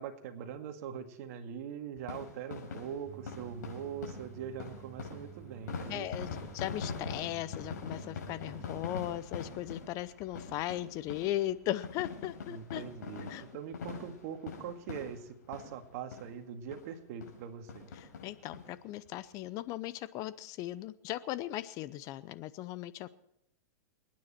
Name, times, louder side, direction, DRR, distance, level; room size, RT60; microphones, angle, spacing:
voice 1, 0.0-6.3 12.5-17.9, right 8 dB, 55° right, 6 dB, 2.0 m, -42 dB
sound 1, 2.0-15.9 16.1-16.3 16.7-16.8 17.2-17.4 17.7-18.6 19.1-19.2 19.3-19.4, left 5 dB, 85° left, 5.5 m, -43 dB
sound 2, 3.1-9.1, right 11 dB, 20° right, 2.0 m, -51 dB
voice 2, 5.9-6.3 6.5-12.8 13.3-13.4 18.0-23.1, left 14 dB, 40° left, 16 dB, 0.6 m, -37 dB
28.0 x 9.5 x 4.4 m, 0.78 s
hypercardioid pair, 135°, 9 cm